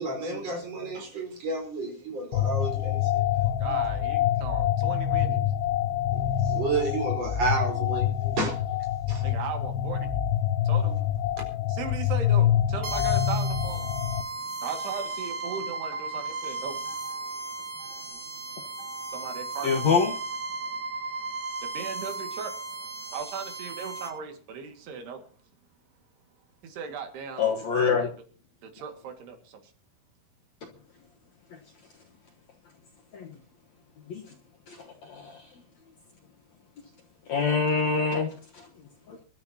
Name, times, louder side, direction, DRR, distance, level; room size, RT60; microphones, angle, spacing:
voice 1, 0.0-3.0 6.1-8.5 9.1-9.2, right 3 dB, 40° right, 5.4 m, -31 dB
sound 1, 2.3-14.2, left 10 dB, 90° left, 2.9 m, -26 dB
voice 2, 3.4-5.4 6.1-6.3 9.2-10.1 10.6-11.0 11.7-17.6 17.9-20.0 20.5-21.3 21.6-25.3 26.6-27.6 27.8-28.1 28.6-29.7, right 6 dB, 85° right, 4.1 m, -38 dB
sound 2, 12.8-24.1, right 3 dB, 65° right, 6.0 m, -35 dB
voice 3, 18.8-19.1 19.6-20.1 27.4-28.1 33.1-33.3 34.1-34.2 34.7-35.4 37.3-38.6 39.1-39.2, left 5 dB, 60° left, 2.0 m, -26 dB
26.0 x 12.5 x 2.8 m
omnidirectional pair, 4.6 m